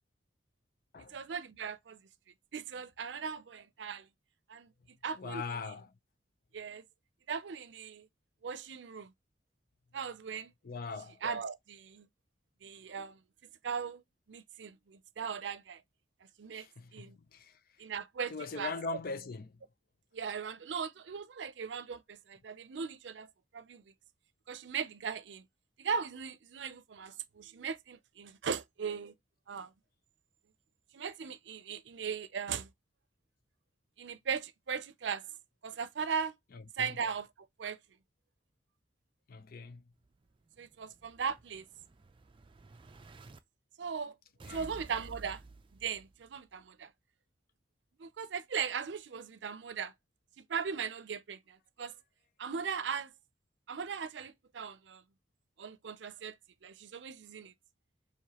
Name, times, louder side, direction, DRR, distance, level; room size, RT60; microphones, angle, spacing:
voice 1, 1.1-2.0 2.5-4.1 4.5-4.7 5.0-5.7 6.5-6.8 7.3-8.1 8.4-9.1 9.9-10.5 11.2-12.1 12.6-13.2 13.6-14.0 14.3-15.8 16.4-16.7 16.9-17.2 17.8-19.0 20.1-23.8 24.5-25.4 25.8-29.1 29.5-29.7 30.9-32.7 34.0-35.2 35.6-36.3 36.8-37.3 37.6-37.8 40.6-41.7 43.8-44.1 44.5-45.4 45.8-46.9 48.0-49.9 50.5-51.9 52.4-53.1 53.7-55.0 55.6-56.4 56.6-57.5, right 6 dB, 90° right, 0.5 m, -38 dB
voice 2, 5.2-5.9 10.6-11.2 16.5-17.5 18.3-19.5 36.5-37.0 39.3-39.8 44.4-44.7, left 4 dB, 55° left, 0.5 m, -41 dB
Explosion, 40.0-43.4 44.4-46.4, right 3 dB, 30° right, 0.5 m, -53 dB
4.8 x 3.0 x 2.9 m
head